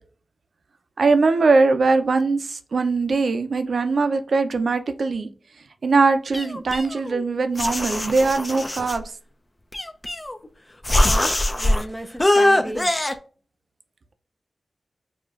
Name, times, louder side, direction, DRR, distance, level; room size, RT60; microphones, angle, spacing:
voice 1, 1.0-5.3 5.8-9.0, right 3 dB, 70° right, 0.5 m, -21 dB
sound 1, 6.3-7.2 7.6-9.0 9.7-10.5 10.8-11.8 12.2-13.1, left 1 dB, 30° left, 0.5 m, -22 dB
voice 2, 11.0-13.1, right 1 dB, 10° right, 0.7 m, -34 dB
4.9 x 2.4 x 2.4 m
cardioid pair, 40°, 0 cm